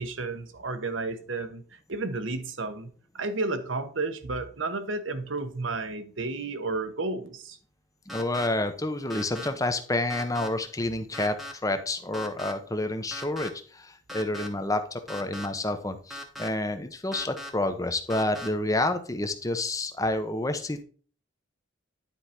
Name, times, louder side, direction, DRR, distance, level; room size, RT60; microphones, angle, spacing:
voice 1, 0.0-1.6 1.9-2.9 3.1-7.6, right 3 dB, 75° right, 1.1 m, -32 dB
voice 2, 8.1-11.4 11.6-20.8, left 2 dB, 15° left, 0.9 m, -29 dB
sound 1, 8.1-8.5 9.1-9.5 10.1-10.5 11.1-11.5 12.1-12.5 13.1-13.5 14.1-14.5 15.1-15.5 16.1-16.5 17.1-17.5 18.1-18.5, left 1 dB, ahead, 1.1 m, -38 dB
10.0 x 4.8 x 4.3 m
head